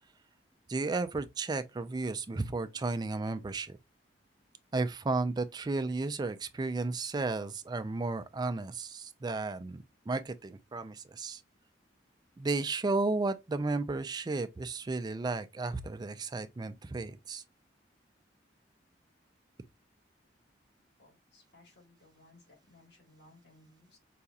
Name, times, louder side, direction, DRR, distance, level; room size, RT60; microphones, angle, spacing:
voice 1, 0.7-3.8 4.7-11.4 12.4-17.4, right 3 dB, 25° right, 0.3 m, -33 dB
voice 2, 21.0-24.0, left 2 dB, 65° left, 2.3 m, -61 dB
4.8 x 2.7 x 2.2 m
head